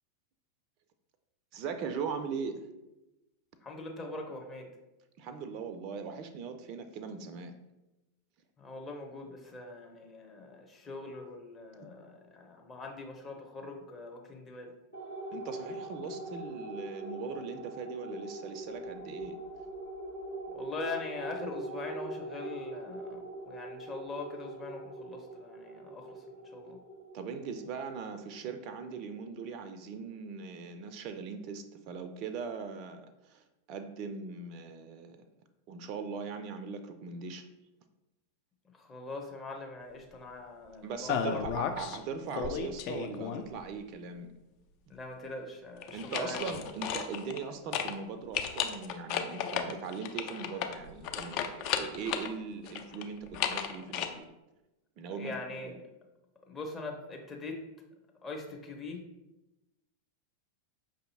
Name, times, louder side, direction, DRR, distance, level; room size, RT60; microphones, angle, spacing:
voice 1, 1.5-2.7 5.2-7.5 15.3-19.4 27.1-35.2 35.7-37.4 40.8-44.3 45.9-54.3 55.0-55.3 55.7-55.8, right 5 dB, 40° right, 8 dB, 0.3 m, -40 dB
voice 2, 3.6-4.7 8.6-14.7 20.5-26.1 26.5-26.8 38.8-41.4 44.9-46.4 55.1-55.8 56.5-57.6 58.2-59.0, left 3 dB, 20° left, 1 dB, 0.7 m, -42 dB
sound 1, 14.9-29.7, right 1 dB, 75° left, 1.3 m, -43 dB
sound 2, 41.1-42.0 42.3-43.6 45.8-47.5 47.7-47.9 48.3-52.3 52.7-54.1, left 8 dB, 40° left, 0.3 m, -34 dB
5.4 x 2.6 x 2.8 m, 0.98 s
figure-of-eight pair, 90°, 0 cm